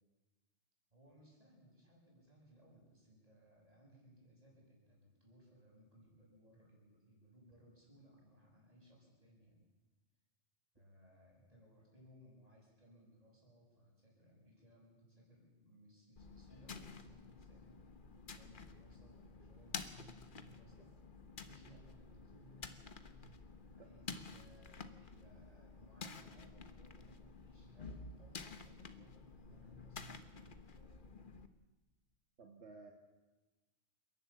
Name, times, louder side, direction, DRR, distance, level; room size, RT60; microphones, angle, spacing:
voice 1, 0.9-9.7 10.7-20.9 21.3-22.7 23.2-23.4 23.7-31.2, equal, 35° right, -2 dB, 6.9 m, -64 dB
sound 1, 16.2-31.5, left 4 dB, 50° left, 1.3 m, -51 dB
voice 2, 32.4-32.9, right 4 dB, 75° right, 2 dB, 2.1 m, -55 dB
28.5 x 11.5 x 8.3 m, 1.2 s
omnidirectional pair, 1.2 m